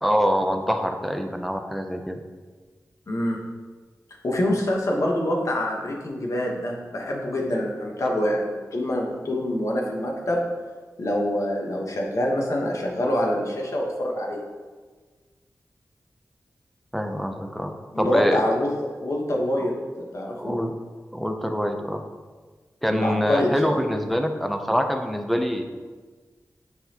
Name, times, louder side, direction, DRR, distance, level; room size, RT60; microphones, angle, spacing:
voice 1, 0.0-2.2 16.9-18.4 19.6-19.7 20.4-20.8 21.1-22.0 22.8-25.7, equal, ahead, 5 dB, 0.5 m, -25 dB
voice 2, 3.1-3.4 4.2-10.5 11.0-14.4 17.9-20.6 22.9-23.7, left 1 dB, 60° left, 0 dB, 1.1 m, -25 dB
9.1 x 4.0 x 2.9 m, 1.4 s
wide cardioid pair, 100°, 6 cm